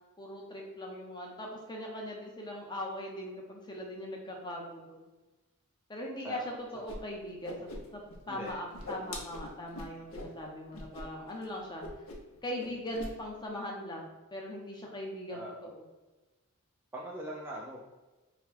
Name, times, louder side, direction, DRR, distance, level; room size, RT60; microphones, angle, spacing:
voice 1, 0.2-5.0 5.9-11.8 12.4-15.8, left 1 dB, 20° left, -1 dB, 0.7 m, -40 dB
voice 2, 6.2-6.8 8.3-9.2 15.3-15.7 16.9-17.9, right 1 dB, 10° right, -3 dB, 0.4 m, -43 dB
Whoosh swoosh swish, 6.9-7.0 7.2-8.2 8.4-10.3 10.7-11.0 11.3-11.5 11.8-12.3 12.6-13.1, left 1 dB, 65° left, 0.7 m, -42 dB
4.2 x 2.2 x 4.1 m, 1.2 s
head